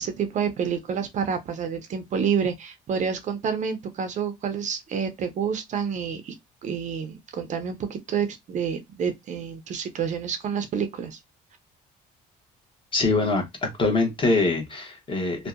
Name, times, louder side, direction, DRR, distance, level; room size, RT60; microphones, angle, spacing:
voice 1, 0.0-6.3 6.6-11.2, right 7 dB, 45° right, 0.4 m, -28 dB
voice 2, 12.9-13.4 13.8-15.5, left 3 dB, 30° left, 0.9 m, -23 dB
2.6 x 2.1 x 2.3 m
cardioid pair, 110°, 17 cm